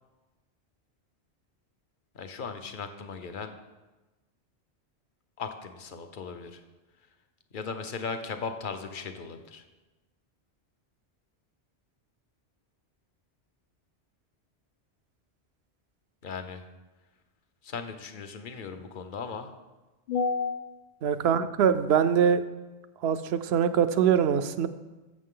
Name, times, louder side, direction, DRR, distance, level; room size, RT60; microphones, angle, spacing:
voice 1, 2.1-3.5 5.4-6.6 7.5-9.6 16.2-16.6 17.6-19.5 20.1-20.6, left 5 dB, 50° left, 7 dB, 0.9 m, -35 dB
voice 2, 21.0-22.4 23.0-24.7, right 8 dB, 70° right, 11 dB, 0.8 m, -23 dB
14.0 x 7.2 x 3.8 m, 1.1 s
omnidirectional pair, 1.1 m